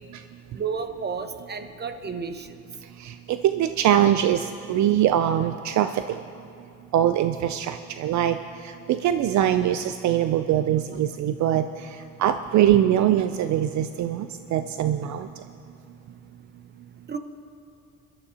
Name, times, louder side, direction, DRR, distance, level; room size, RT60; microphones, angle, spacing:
voice 1, 0.5-2.5 17.1-17.2, right 5 dB, 35° right, 7 dB, 1.1 m, -32 dB
voice 2, 3.0-6.2 6.9-15.3, right 11 dB, 70° right, 9 dB, 0.5 m, -23 dB
24.5 x 12.0 x 2.8 m, 2.6 s
cardioid pair, 90°, 30 cm